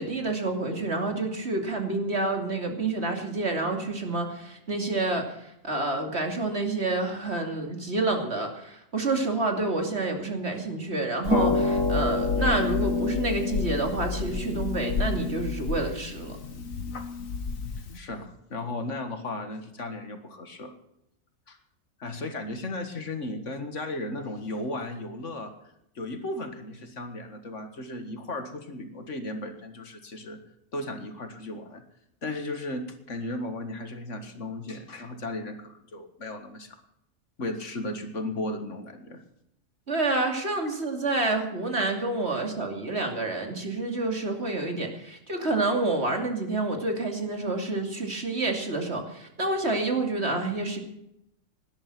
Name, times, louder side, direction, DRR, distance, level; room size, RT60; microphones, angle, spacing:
voice 1, 0.0-16.4 39.9-50.8, right 2 dB, 55° right, 3 dB, 2.9 m, -28 dB
Harp, 11.2-18.0, left 4 dB, 80° left, 2.0 m, -28 dB
voice 2, 17.9-20.8 21.5-21.6 22.0-25.5 26.0-30.4 30.7-31.8 32.2-36.8 37.4-39.2, left 2 dB, 65° left, 7 dB, 2.1 m, -35 dB
18.5 x 11.5 x 6.1 m, 0.80 s
omnidirectional pair, 1.4 m